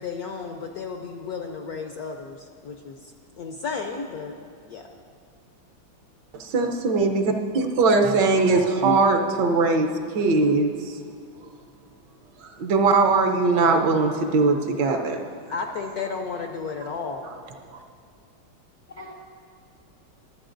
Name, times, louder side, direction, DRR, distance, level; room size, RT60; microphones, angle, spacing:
voice 1, 0.0-4.4 4.7-4.9 15.5-17.4, left 5 dB, 70° left, 4 dB, 0.9 m, -33 dB
voice 2, 6.3-9.9 10.1-11.0 12.4-15.3, right 3 dB, 70° right, 4 dB, 1.4 m, -21 dB
voice 3, 8.4-9.0 18.9-19.1, left 1 dB, 45° left, -1 dB, 0.6 m, -32 dB
23.5 x 8.4 x 2.6 m, 2.3 s
omnidirectional pair, 2.1 m